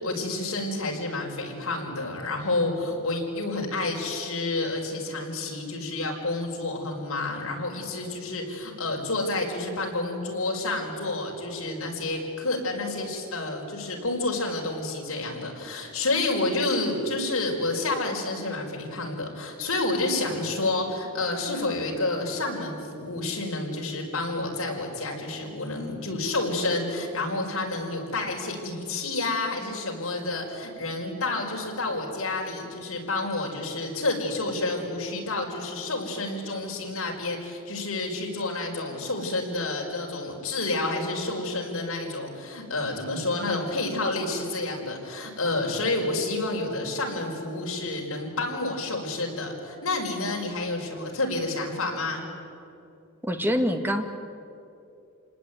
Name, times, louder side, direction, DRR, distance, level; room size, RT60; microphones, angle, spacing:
voice 1, 0.0-52.2, left 2 dB, 70° left, 0 dB, 5.5 m, -29 dB
voice 2, 53.2-54.0, equal, 10° right, 5 dB, 2.0 m, -25 dB
28.5 x 19.5 x 9.4 m, 2.6 s
head